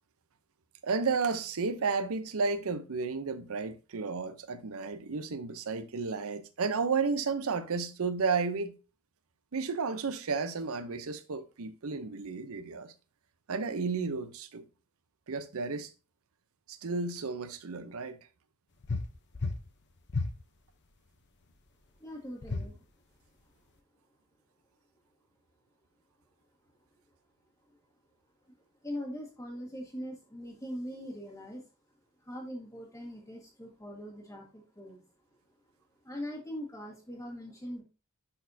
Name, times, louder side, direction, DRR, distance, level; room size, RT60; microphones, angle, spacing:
voice 1, 0.8-8.7 9.5-12.9 13.5-14.6 15.3-15.9 16.7-18.2, right 4 dB, 70° right, 0.7 m, -32 dB
sound 1, 18.8-19.1 19.3-19.6 20.1-20.3 22.4-22.7, left 3 dB, 50° left, 0.8 m, -32 dB
voice 2, 22.0-22.7 28.8-31.6 32.2-35.0 36.0-37.8, equal, 15° left, 1.5 m, -41 dB
11.0 x 4.1 x 2.7 m
head